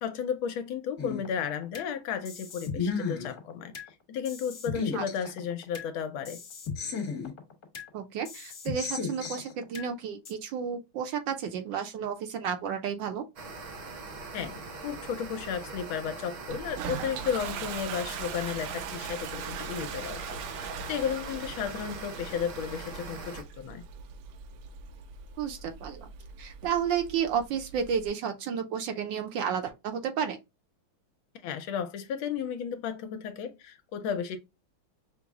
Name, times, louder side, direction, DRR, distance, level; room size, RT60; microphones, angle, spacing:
voice 1, 0.0-3.7 4.1-6.4 14.3-23.8 31.4-34.4, left 7 dB, 75° left, 1.4 m, -34 dB
sound 1, 1.0-1.9 2.2-3.9 4.2-5.9 6.2-7.9 8.2-9.9 10.2-10.3, left 5 dB, 50° left, 1.5 m, -35 dB
voice 2, 7.9-13.2 25.4-26.1 26.4-30.4, right 7 dB, 70° right, 1.2 m, -32 dB
sound 2, 13.4-23.4, right 3 dB, 55° right, 0.9 m, -42 dB
Toilet flush, 16.5-28.1, right 7 dB, 85° right, 1.5 m, -41 dB
5.9 x 2.0 x 3.4 m
omnidirectional pair, 2.3 m